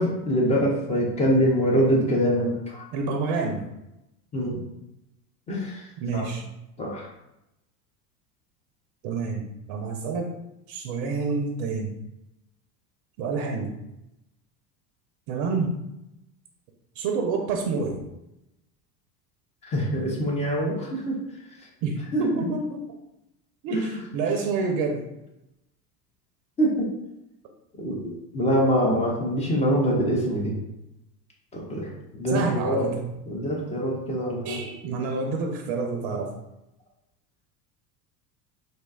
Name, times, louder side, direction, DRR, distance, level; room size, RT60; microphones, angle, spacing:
voice 1, 0.0-2.8 4.3-4.6 5.5-5.9 6.1-6.3 6.8-7.1 19.6-21.2 22.1-22.2 23.7-23.9 26.6-26.9 27.8-30.5 31.5-32.9 33.3-34.6, equal, 15° left, -2 dB, 0.3 m, -24 dB
voice 2, 2.9-3.6 6.0-6.4 9.0-10.4 10.7-11.9 13.2-13.8 15.3-15.7 17.0-18.0 21.8-22.8 23.6-25.0 32.3-33.1 34.4-36.3, right 4 dB, 45° right, 3 dB, 0.5 m, -28 dB
2.6 x 2.1 x 2.2 m, 0.89 s
hypercardioid pair, 80°, 48 cm